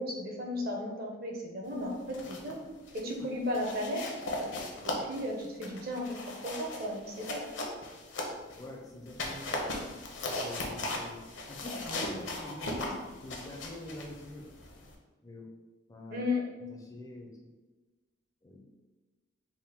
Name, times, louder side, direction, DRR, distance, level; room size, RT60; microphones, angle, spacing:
voice 1, 0.0-2.6 2.9-4.0 4.4-4.5 4.8-7.4 16.1-16.4, left 1 dB, 50° right, 0 dB, 0.7 m, -35 dB
sound 1, 1.9-2.6 2.9-3.1 3.5-8.7 9.1-15.0, left 2 dB, 70° left, 0.7 m, -38 dB
voice 2, 8.6-9.6 10.2-14.5 15.2-15.5 15.9-16.3 16.7-17.5 18.4-18.6, left 1 dB, 15° left, 0 dB, 0.4 m, -45 dB
3.5 x 2.1 x 4.2 m, 1.2 s
head